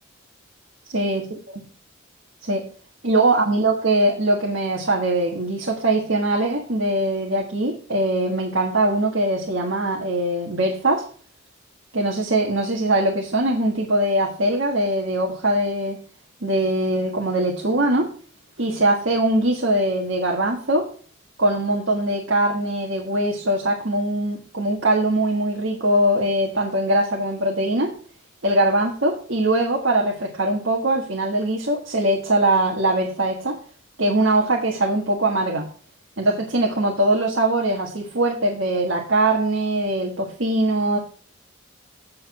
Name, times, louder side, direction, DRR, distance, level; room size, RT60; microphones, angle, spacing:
voice 1, 0.9-1.6 2.4-2.7 3.0-11.0 11.9-16.0 16.4-18.1 18.6-20.9 21.4-27.9 28.4-33.6 34.0-35.7 36.2-41.0, right 1 dB, 65° right, -1 dB, 1.7 m, -21 dB
8.6 x 6.7 x 4.3 m, 0.42 s
head